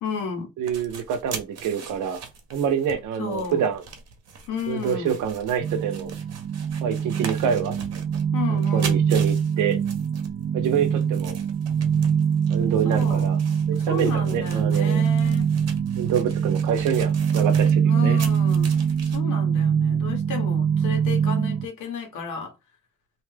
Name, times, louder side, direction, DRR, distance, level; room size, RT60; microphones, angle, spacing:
voice 1, 0.0-0.5 3.2-3.7 4.5-5.2 8.3-9.1 12.8-13.3 13.9-15.5 17.8-18.8 19.1-22.6, left 6 dB, 85° left, 1.2 m, -32 dB
sound 1, 0.6-19.2, right 6 dB, 55° right, 0.9 m, -41 dB
voice 2, 0.6-3.8 4.7-6.1 6.8-7.8 8.5-9.8 10.5-11.4 12.5-13.4 13.7-15.0 16.0-18.2, right 8 dB, 85° right, 0.7 m, -26 dB
sound 2, 5.6-21.7, right 7 dB, 35° right, 0.4 m, -23 dB
2.7 x 2.2 x 3.2 m
cardioid pair, 90°, 30 cm